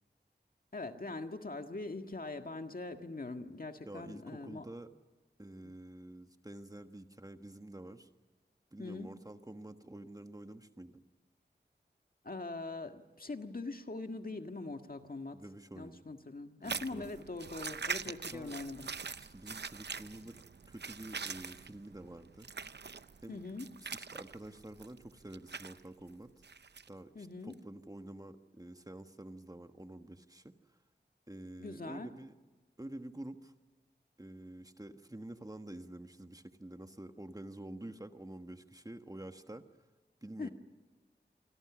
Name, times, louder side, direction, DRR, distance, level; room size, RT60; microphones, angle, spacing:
voice 1, 0.7-4.6 5.6-5.7 8.8-9.1 12.2-15.4 15.8-18.9 23.3-23.7 27.1-27.6 31.6-32.1 40.4-40.5, left 3 dB, 55° left, 6 dB, 1.7 m, -42 dB
voice 2, 3.8-4.9 5.4-8.1 8.7-11.0 15.3-16.0 16.6-17.3 18.3-18.6 19.2-22.5 23.2-23.4 23.8-26.3 26.9-30.5 31.3-32.3 32.8-33.5 34.2-39.6 40.2-40.5, right 1 dB, 20° right, 7 dB, 1.4 m, -48 dB
sound 1, 16.6-25.8 26.4-26.9 27.5-27.6, right 5 dB, 75° right, 0.7 m, -43 dB
26.0 x 25.5 x 6.2 m, 1.3 s
wide cardioid pair, 70°, 18 cm